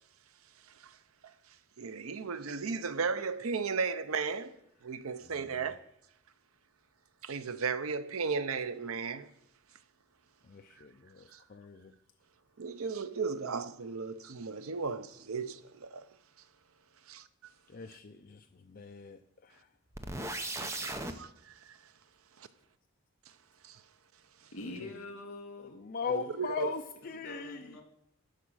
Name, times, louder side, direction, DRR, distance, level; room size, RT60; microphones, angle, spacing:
voice 1, 1.8-4.6 4.8-5.8 7.2-9.3 11.3-11.4 12.6-16.1 17.1-17.2 20.5-21.8 23.6-23.8 26.1-26.7, right 5 dB, 80° right, 0.6 m, -35 dB
voice 2, 5.2-5.8 10.4-11.9 17.7-19.7 24.8-24.9 25.6-27.8, left 5 dB, 45° left, 0.4 m, -40 dB
sound 1, 19.9-21.1, right 2 dB, 15° right, 0.6 m, -37 dB
voice 3, 24.5-25.8 26.6-26.7 27.2-27.8, left 2 dB, 75° left, 2.2 m, -44 dB
13.0 x 5.0 x 6.3 m
head